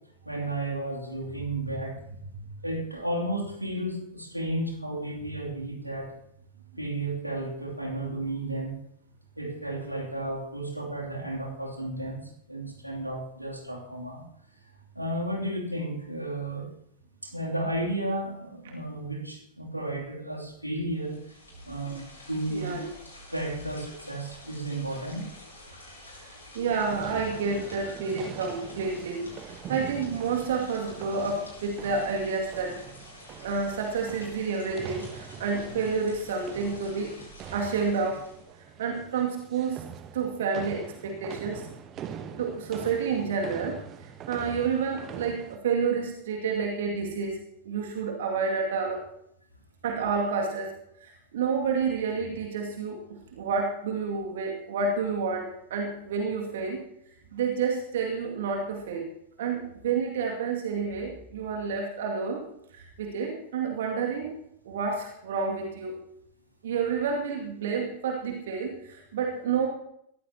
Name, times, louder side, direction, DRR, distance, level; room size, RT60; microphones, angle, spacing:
voice 1, 0.2-2.0 2.6-6.1 6.8-8.8 9.4-14.2 14.9-16.6 17.2-21.2 21.6-22.0 22.3-22.8 23.3-25.3, right 1 dB, 90° right, -2 dB, 2.9 m, -33 dB
sound 1, 20.9-38.5, left 1 dB, 80° left, 7.3 m, -49 dB
voice 2, 22.5-22.9 26.2-32.9 33.4-37.1 37.5-38.3 38.6-39.9 40.1-41.7 42.4-47.4 47.6-49.0 49.8-50.8 51.0-56.9 57.3-59.1 59.4-62.5 62.7-64.3 64.6-66.0 66.6-69.7, right 5 dB, 60° right, 1 dB, 2.3 m, -30 dB
sound 2, 26.7-45.6, right 8 dB, 35° right, 1.2 m, -43 dB
21.0 x 14.5 x 2.9 m, 0.74 s
figure-of-eight pair, 90°, 0 cm